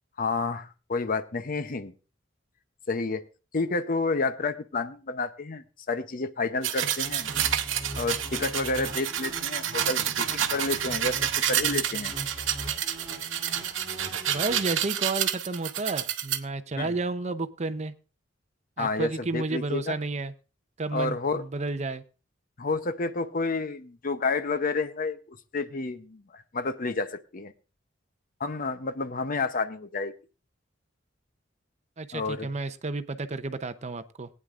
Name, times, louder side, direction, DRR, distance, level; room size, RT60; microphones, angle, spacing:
voice 1, 0.2-1.9 2.9-3.2 3.5-7.3 8.0-12.1 16.8-16.9 18.8-20.0 20.9-21.4 22.6-27.5 28.4-30.1 32.1-32.5, left 3 dB, 45° left, 11 dB, 0.7 m, -30 dB
sound 1, 6.6-16.4, right 10 dB, 85° right, 0.9 m, -29 dB
sound 2, 7.0-15.2, right 1 dB, 20° right, 3.8 m, -41 dB
voice 2, 14.3-17.9 18.8-20.3 20.8-22.0 32.0-34.3, right 3 dB, 35° right, 11 dB, 0.7 m, -31 dB
19.5 x 9.6 x 2.5 m, 0.33 s
head